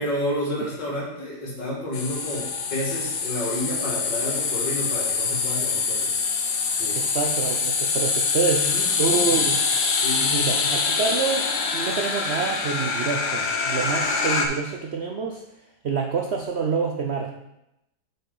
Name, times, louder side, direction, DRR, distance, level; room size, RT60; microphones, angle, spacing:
voice 1, 0.0-6.2 6.7-7.0 8.6-9.5 10.0-10.7, left 1 dB, 90° left, -3 dB, 2.5 m, -30 dB
sound 1, 1.9-14.5, left 5 dB, 70° left, 1.4 m, -25 dB
voice 2, 6.9-9.6 10.3-11.5 11.7-15.4 15.8-17.3, right 5 dB, 75° right, 2 dB, 0.6 m, -27 dB
7.9 x 5.5 x 4.0 m, 0.87 s
omnidirectional pair, 1.8 m